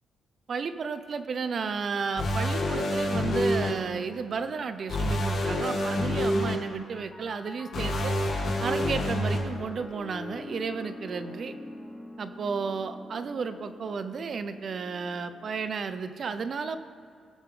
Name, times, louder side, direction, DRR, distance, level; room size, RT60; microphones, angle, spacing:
voice 1, 0.5-8.1 8.6-11.6 12.2-16.8, right 5 dB, 50° right, 10 dB, 0.8 m, -33 dB
sound 1, 2.2-3.7 4.9-6.5 7.7-9.4, left 1 dB, 70° left, 2.6 m, -27 dB
Piano, 6.2-15.7, left 1 dB, 10° left, 2.1 m, -45 dB
20.0 x 7.4 x 3.8 m, 2.5 s
cardioid pair, 110°, 0 cm